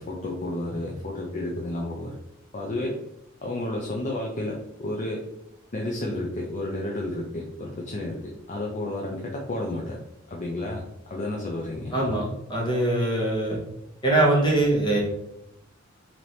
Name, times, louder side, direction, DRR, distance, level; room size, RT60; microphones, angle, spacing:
voice 1, 0.0-2.1 2.5-3.0 3.4-5.2 5.7-10.0 10.3-12.1, left 1 dB, 40° left, -1 dB, 0.5 m, -31 dB
voice 2, 11.9-13.6 14.0-15.0, right 2 dB, 20° left, -3 dB, 1.3 m, -22 dB
3.2 x 2.9 x 4.1 m, 0.81 s
head